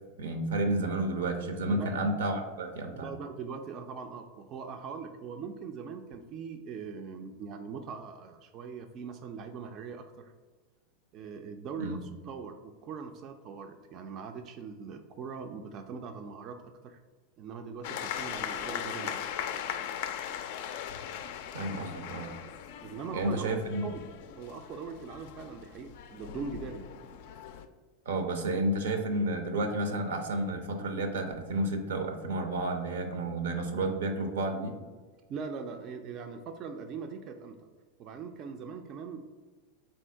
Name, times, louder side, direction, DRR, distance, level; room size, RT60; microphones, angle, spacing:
voice 1, 0.2-3.1 11.8-12.0 21.5-22.3 23.1-23.9 28.1-34.7, right 2 dB, 85° right, 6 dB, 0.6 m, -31 dB
voice 2, 2.9-10.3 11.1-17.0 17.4-19.2 22.8-24.0 24.4-26.9 35.3-37.7 38.0-39.3, right 5 dB, 45° right, 5 dB, 0.3 m, -41 dB
sound 1, 17.8-27.7, left 9 dB, 65° left, 0.3 m, -39 dB
3.7 x 2.7 x 4.4 m, 1.4 s
hypercardioid pair, 110°, 0 cm